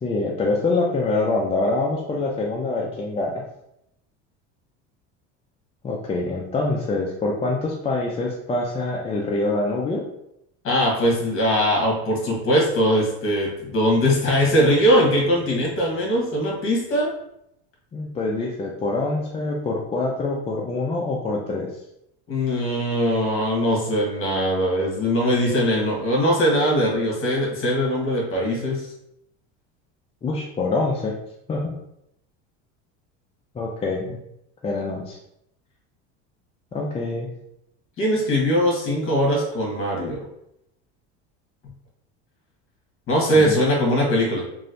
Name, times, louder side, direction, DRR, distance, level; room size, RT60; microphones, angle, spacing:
voice 1, 0.0-3.3 5.8-10.0 17.9-21.7 30.2-31.1 31.5-31.7 33.5-34.0 34.6-35.2 36.7-37.3 43.4-43.6, left 2 dB, 20° left, -3 dB, 0.4 m, -25 dB
voice 2, 10.6-17.1 22.3-28.8 38.0-40.2 43.1-44.4, equal, 40° left, -1 dB, 1.3 m, -21 dB
3.0 x 2.6 x 2.6 m, 0.80 s
supercardioid pair, 105°, 33 cm